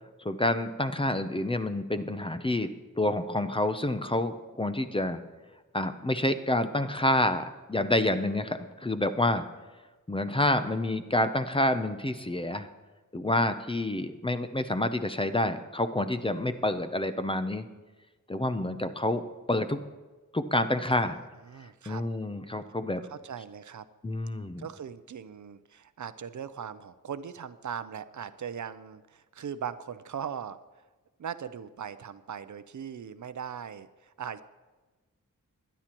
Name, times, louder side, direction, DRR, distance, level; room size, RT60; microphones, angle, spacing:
voice 1, 0.2-2.7 3.0-5.2 5.7-7.4 7.7-9.4 10.1-12.7 13.1-17.6 18.3-19.2 19.5-19.8 20.3-21.2 21.9-23.0 24.0-24.7, left 1 dB, 15° left, 9 dB, 0.5 m, -28 dB
voice 2, 21.5-22.0 23.0-23.9 24.6-30.6 31.2-34.4, right 8 dB, 60° right, 13 dB, 0.6 m, -39 dB
22.5 x 10.0 x 3.0 m, 1.2 s
wide cardioid pair, 130°, 33 cm